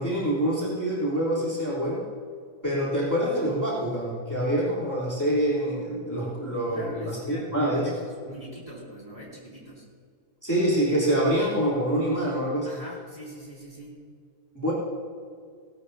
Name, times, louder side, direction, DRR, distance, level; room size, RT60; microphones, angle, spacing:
voice 1, 0.0-2.1 2.6-8.0 10.4-12.8 14.5-14.7, equal, 10° left, -8 dB, 3.4 m, -26 dB
voice 2, 6.7-9.9 12.6-14.0, right 1 dB, 25° right, -7 dB, 4.1 m, -42 dB
18.0 x 13.0 x 2.8 m, 2.1 s
omnidirectional pair, 1.7 m